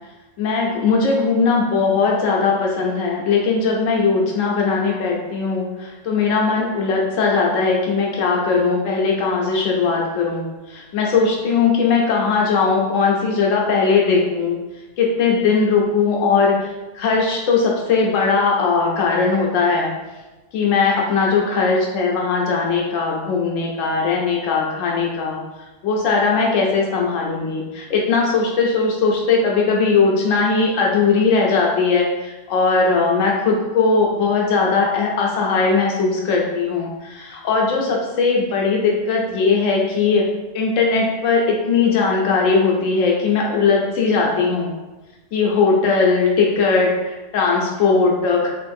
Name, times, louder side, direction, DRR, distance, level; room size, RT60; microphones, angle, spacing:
voice 1, 0.4-14.6 15.0-19.9 20.5-25.4 25.8-40.2 40.5-44.7 45.3-48.5, left 4 dB, 90° left, -1 dB, 1.0 m, -19 dB
4.3 x 2.5 x 2.5 m, 1.1 s
omnidirectional pair, 1.3 m